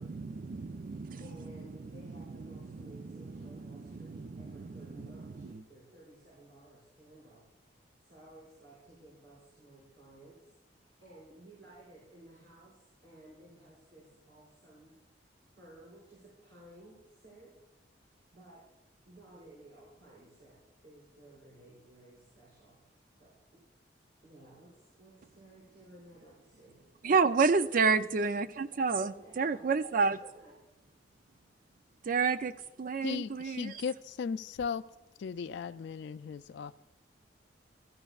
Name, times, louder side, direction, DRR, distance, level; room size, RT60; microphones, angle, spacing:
voice 1, 0.0-1.2 2.2-5.6 27.0-30.2 32.1-32.5 32.8-33.7, right 4 dB, 50° right, 12 dB, 0.5 m, -30 dB
voice 2, 0.7-15.2 15.6-17.5 18.3-18.6 19.1-22.8 23.2-23.6 24.2-26.8 27.6-27.9 29.0-30.5, right 1 dB, 85° right, -8 dB, 5.7 m, -56 dB
voice 3, 33.0-34.8 35.2-36.8, left 6 dB, 70° left, 11 dB, 0.3 m, -37 dB
21.0 x 13.5 x 2.4 m, 0.99 s
head